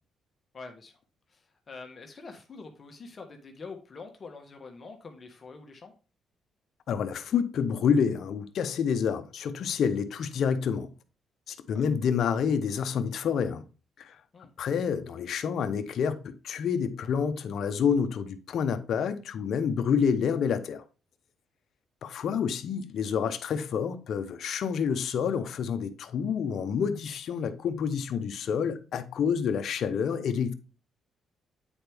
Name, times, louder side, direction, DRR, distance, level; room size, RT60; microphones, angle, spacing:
voice 1, 0.5-1.0 1.3-5.9 11.7-11.9 14.3-14.5, left 4 dB, 40° left, 1.3 m, -45 dB
voice 2, 6.9-10.9 11.5-13.6 14.0-14.2 14.6-20.8 22.0-30.5, left 7 dB, 65° left, 0.8 m, -28 dB
8.7 x 4.5 x 3.5 m
cardioid pair, 90°, 0 cm